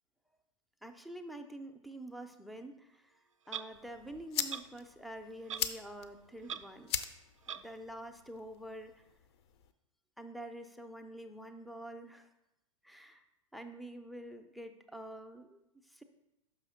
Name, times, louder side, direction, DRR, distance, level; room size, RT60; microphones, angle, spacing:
voice 1, 0.8-3.2 3.5-6.9 7.5-9.0 10.2-12.3 12.8-13.2 13.5-16.0, right 1 dB, ahead, 8 dB, 0.5 m, -47 dB
Clock, 3.5-3.7 4.5-4.6 5.5-5.7 6.0-6.1 6.4-6.6 7.5-7.6, right 8 dB, 70° right, 0.4 m, -40 dB
sound 1, 3.7-9.7, left 9 dB, 50° left, 0.5 m, -42 dB
5.9 x 5.8 x 4.3 m, 0.91 s
figure-of-eight pair, 95°, 17 cm